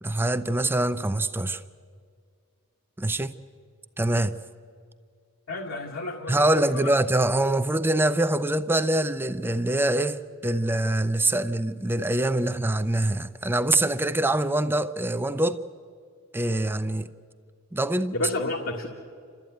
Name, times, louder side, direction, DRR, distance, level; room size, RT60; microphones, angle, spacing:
voice 1, 0.0-1.6 3.0-3.3 4.0-4.4 6.3-15.6 16.3-17.1 17.7-18.1, right 1 dB, 10° right, 0.5 m, -24 dB
voice 2, 5.5-6.4 6.7-6.9 18.1-18.9, left 2 dB, 70° left, 1.8 m, -30 dB
29.0 x 13.5 x 9.2 m
head